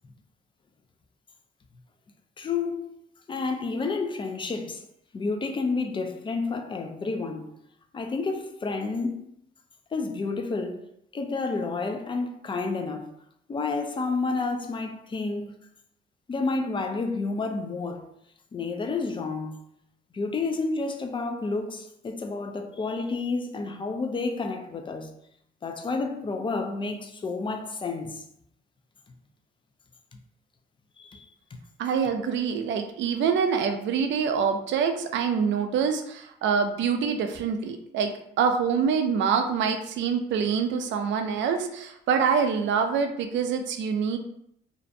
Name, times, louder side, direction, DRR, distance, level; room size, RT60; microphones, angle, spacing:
voice 1, 2.4-3.0 3.3-4.8 5.1-7.5 7.9-9.2 9.9-10.9 11.1-13.1 13.5-15.5 16.3-18.0 18.5-19.6 20.1-25.1 25.6-28.2 31.0-31.2, left 3 dB, 25° left, 0.3 m, -30 dB
voice 2, 31.8-44.2, right 6 dB, 70° right, 0.4 m, -25 dB
2.5 x 2.1 x 2.6 m
cardioid pair, 90°, 20 cm